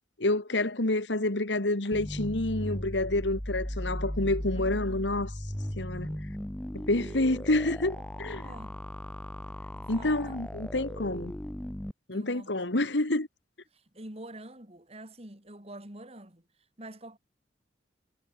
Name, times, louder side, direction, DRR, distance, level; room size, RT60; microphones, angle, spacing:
voice 1, 0.2-5.3 5.7-6.2 6.7-8.5 9.9-11.4 12.1-13.3, left 2 dB, 85° left, 2.2 m, -28 dB
sound 1, 1.9-11.9, equal, 5° left, 0.7 m, -37 dB
voice 2, 4.6-5.1 7.0-7.2 8.0-8.9 9.7-10.4 10.7-10.9 12.1-12.6 13.7-16.5 16.8-17.2, right 1 dB, 35° right, 3.7 m, -47 dB
head